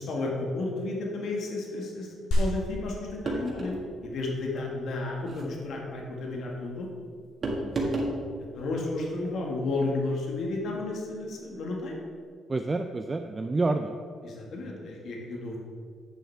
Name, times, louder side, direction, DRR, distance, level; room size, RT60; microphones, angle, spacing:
voice 1, 0.0-3.8 4.0-6.9 8.5-12.0 14.2-15.6, left 2 dB, 70° left, -1 dB, 1.7 m, -32 dB
sound 1, 2.3-12.3, equal, 85° left, 1.7 m, -37 dB
sound 2, 3.3-3.8 5.2-5.5 7.4-8.2, right 2 dB, 45° right, 1.8 m, -30 dB
voice 2, 7.4-7.8 12.5-14.0, right 3 dB, 25° right, 6 dB, 0.4 m, -29 dB
10.0 x 7.0 x 3.5 m, 2.1 s
cardioid pair, 90°, 0 cm